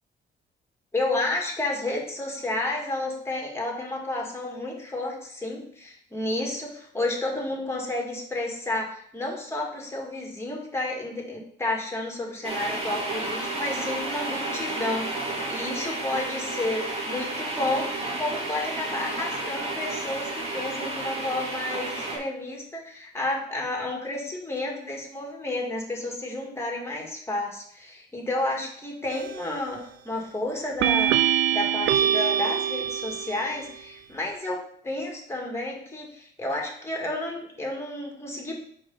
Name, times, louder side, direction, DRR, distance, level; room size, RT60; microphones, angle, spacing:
voice 1, 0.9-17.9 18.2-34.6 34.8-38.5, left 2 dB, 15° left, -1 dB, 1.9 m, -31 dB
sound 1, 12.4-22.2, right 2 dB, 30° right, 2.1 m, -31 dB
sound 2, 29.1-29.6 30.8-33.6, right 9 dB, 80° right, 0.5 m, -24 dB
4.8 x 4.4 x 5.5 m, 0.64 s
cardioid pair, 90°, 20 cm